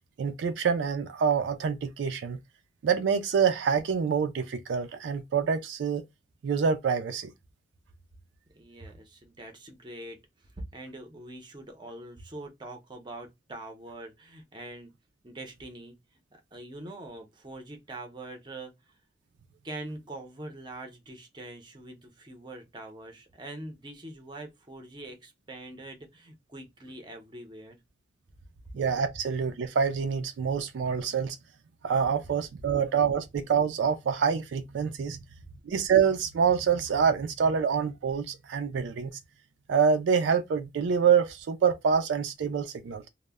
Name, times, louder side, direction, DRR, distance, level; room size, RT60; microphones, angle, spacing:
voice 1, 0.2-2.4 2.8-6.0 6.4-7.3 28.7-31.4 31.8-35.2 35.7-39.1 39.7-43.1, right 6 dB, 75° right, 0.3 m, -26 dB
voice 2, 8.5-14.9 15.2-16.0 16.3-18.7 19.6-27.8, right 2 dB, 25° right, 0.6 m, -43 dB
2.1 x 2.0 x 3.4 m
head